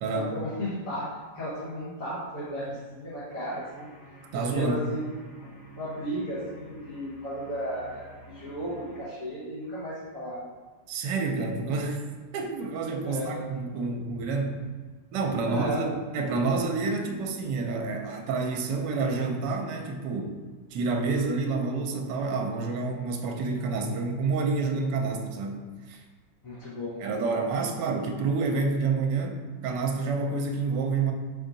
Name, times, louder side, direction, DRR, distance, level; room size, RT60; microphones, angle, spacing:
voice 1, 0.1-3.9 4.3-5.0 5.4-5.5 5.7-10.4 13.0-13.4 15.4-15.8 26.4-27.4, equal, 50° left, -12 dB, 1.4 m, -34 dB
sound 1, 3.5-9.0, right 1 dB, 20° left, 1.4 m, -49 dB
voice 2, 4.3-4.8 10.9-12.0 12.3-14.6 15.1-20.4 20.7-26.0 27.0-31.1, right 4 dB, 75° right, 2 dB, 1.2 m, -28 dB
4.8 x 2.7 x 3.9 m, 1.4 s
omnidirectional pair, 2.0 m